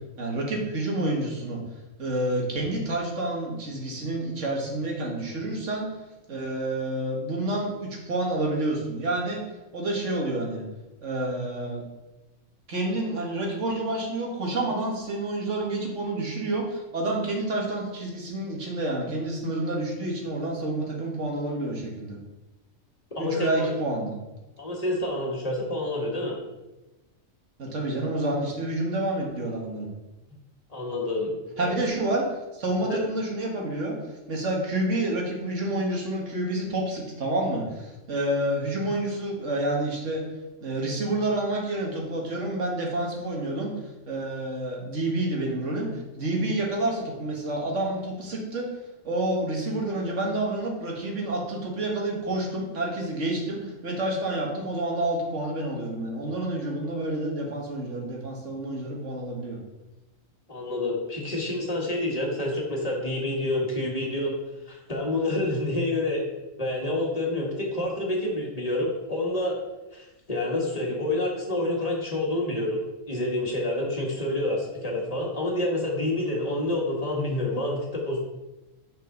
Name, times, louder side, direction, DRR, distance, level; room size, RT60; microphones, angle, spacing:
voice 1, 0.2-1.6 2.0-5.9 6.3-9.4 9.7-10.6 11.0-11.8 12.7-22.2 23.2-24.1 27.6-29.9 31.6-34.0 34.3-40.2 40.6-43.7 44.1-48.7 49.0-59.6, right 1 dB, 60° right, -1 dB, 2.0 m, -29 dB
voice 2, 23.1-23.7 24.6-26.4 30.7-31.7 32.9-33.0 60.5-64.4 64.7-66.2 66.6-69.6 69.9-72.8 73.1-78.2, left 1 dB, 30° left, -2 dB, 1.7 m, -28 dB
8.3 x 5.9 x 3.9 m, 1.0 s
omnidirectional pair, 1.4 m